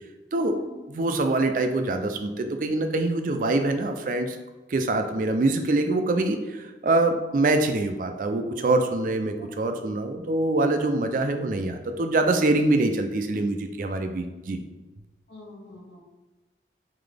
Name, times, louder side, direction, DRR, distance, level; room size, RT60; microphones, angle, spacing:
voice 1, 0.3-1.0 9.4-9.5 9.8-10.0 15.3-16.0, left 1 dB, 65° left, -2 dB, 1.1 m, -44 dB
voice 2, 0.9-4.4 4.7-14.6, right 2 dB, 45° right, 7 dB, 0.4 m, -24 dB
3.9 x 3.9 x 3.3 m, 1.2 s
head